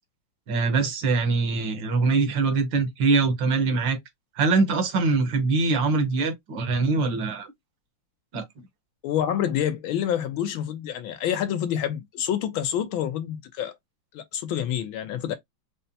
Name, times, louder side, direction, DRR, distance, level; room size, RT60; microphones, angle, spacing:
voice 1, 0.5-4.0 4.4-7.5 8.3-8.4, right 4 dB, 65° right, 1.7 m, -23 dB
voice 2, 9.0-13.7 14.1-15.3, left 10 dB, 75° left, 1.4 m, -27 dB
5.4 x 2.1 x 2.7 m
omnidirectional pair, 2.3 m